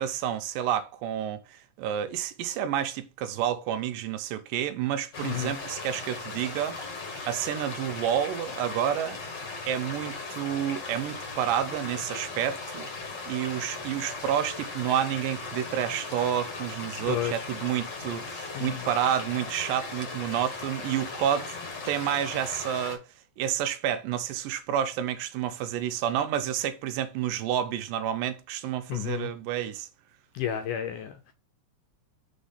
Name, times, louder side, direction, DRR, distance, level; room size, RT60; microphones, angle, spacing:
voice 1, 0.0-6.8 7.3-9.2 9.7-12.9 13.3-21.5 21.9-23.0 23.4-29.9, right 10 dB, 80° right, 2.2 m, -29 dB
sound 1, 5.1-23.0, left 3 dB, 50° left, 1.3 m, -38 dB
voice 2, 5.2-5.6 17.1-17.5 18.5-18.9 28.9-29.3 30.3-31.3, left 10 dB, 75° left, 1.9 m, -32 dB
6.3 x 3.5 x 5.5 m
omnidirectional pair, 4.1 m